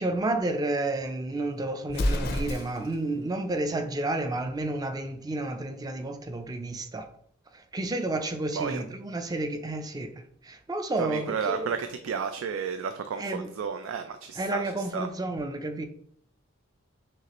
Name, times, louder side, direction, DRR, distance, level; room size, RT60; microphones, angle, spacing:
voice 1, 0.0-7.1 7.5-11.7 13.2-13.5 14.3-15.9, right 2 dB, 20° right, 0.4 m, -31 dB
Explosion, 1.9-3.0, left 1 dB, 50° left, 0.4 m, -29 dB
voice 2, 11.0-14.6 14.9-15.1, right 6 dB, 90° right, 0.3 m, -32 dB
6.1 x 2.4 x 2.9 m
head